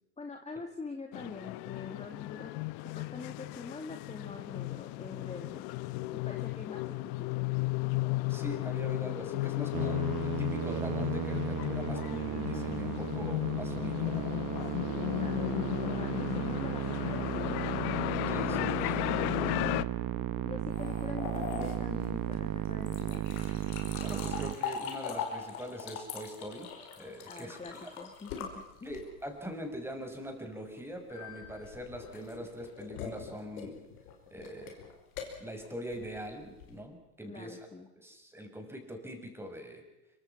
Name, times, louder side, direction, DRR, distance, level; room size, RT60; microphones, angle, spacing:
voice 1, 0.2-5.7 6.1-7.5 14.6-17.8 20.4-23.2 27.3-29.0 37.3-37.9, left 3 dB, 15° left, 4 dB, 2.3 m, -45 dB
sound 1, 1.1-19.8, left 20 dB, 65° left, 1.0 m, -34 dB
voice 2, 8.3-14.3 18.3-19.1 24.0-27.9 28.8-33.8 34.3-34.8 35.4-37.6 38.0-39.8, equal, 5° right, 4 dB, 6.3 m, -42 dB
Musical instrument, 9.7-24.5, right 13 dB, 50° right, 1.4 m, -35 dB
sound 2, 20.7-29.3 31.1-36.8, left 7 dB, 90° left, 5.3 m, -42 dB
25.5 x 24.5 x 5.9 m, 0.96 s
supercardioid pair, 100°, 43 cm